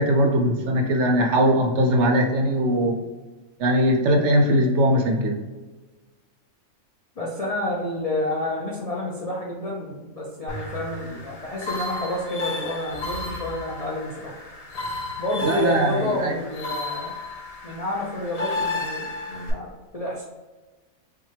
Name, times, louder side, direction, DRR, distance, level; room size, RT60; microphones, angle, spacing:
voice 1, 0.0-2.9 3.6-5.4 15.4-16.3, equal, 65° right, 2 dB, 0.8 m, -20 dB
voice 2, 7.2-14.3 15.2-17.1 17.6-20.2, left 1 dB, 50° left, -4 dB, 0.4 m, -29 dB
sound 1, 10.5-19.5, left 2 dB, 75° left, 1.7 m, -33 dB
5.6 x 2.2 x 3.2 m, 1.2 s
omnidirectional pair, 1.5 m